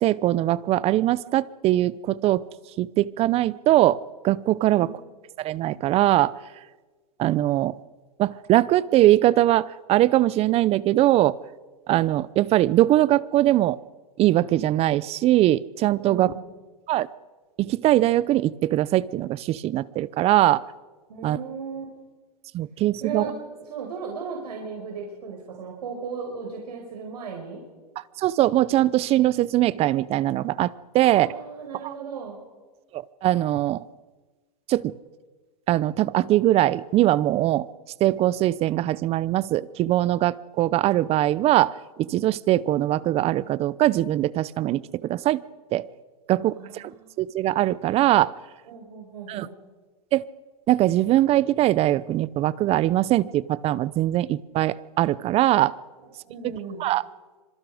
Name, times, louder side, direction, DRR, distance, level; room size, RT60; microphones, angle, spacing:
voice 1, 0.0-2.4 2.8-4.9 5.4-6.3 7.2-7.8 8.2-11.4 11.9-13.8 14.2-16.3 16.9-17.1 17.6-20.6 21.2-21.4 22.5-23.3 28.2-31.3 31.8-31.9 32.9-33.8 34.7-34.9 35.7-37.7 38.0-41.7 42.0-45.4 45.7-45.9 46.3-46.9 47.2-48.3 49.3-49.5 50.1-50.2 50.7-55.7 56.8-57.0, right 14 dB, 30° right, 20 dB, 0.7 m, -21 dB
voice 2, 16.0-16.5 21.1-21.9 23.0-23.4 23.7-27.6 31.0-32.4 46.3-47.1 48.7-49.5 56.2-56.8, right 5 dB, 85° right, 0 dB, 5.5 m, -36 dB
26.0 x 24.0 x 5.1 m, 1.3 s
hypercardioid pair, 130°, 20 cm